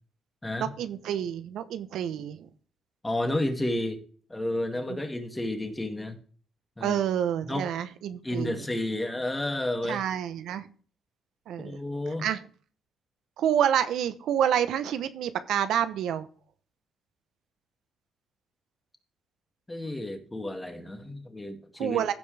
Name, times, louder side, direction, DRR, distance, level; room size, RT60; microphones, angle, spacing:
voice 1, 0.6-2.5 4.9-5.0 6.8-8.6 9.9-10.7 11.5-11.8 12.2-12.4 13.4-16.3 21.8-22.1, right 9 dB, 75° right, 11 dB, 0.8 m, -28 dB
voice 2, 3.0-4.0 4.3-6.2 6.8-7.0 7.5-7.7 8.2-10.0 11.6-12.3 19.7-22.0, left 1 dB, 15° left, 4 dB, 2.4 m, -31 dB
15.5 x 5.3 x 3.4 m, 0.42 s
cardioid pair, 95°, 0 cm